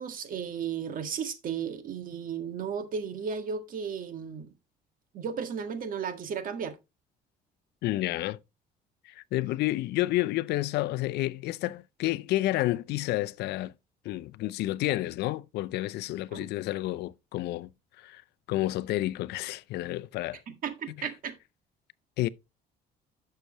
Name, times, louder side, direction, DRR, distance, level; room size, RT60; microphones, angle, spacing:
voice 1, 0.0-4.5 5.1-6.8 16.3-16.5 20.6-21.3, right 7 dB, 55° right, 1.8 m, -34 dB
voice 2, 7.8-8.4 9.0-13.7 14.0-17.7 18.0-18.2 18.5-20.4 21.0-21.1 22.2-22.3, left 16 dB, 80° left, 0.5 m, -30 dB
11.0 x 6.7 x 3.0 m
cardioid pair, 110°, 17 cm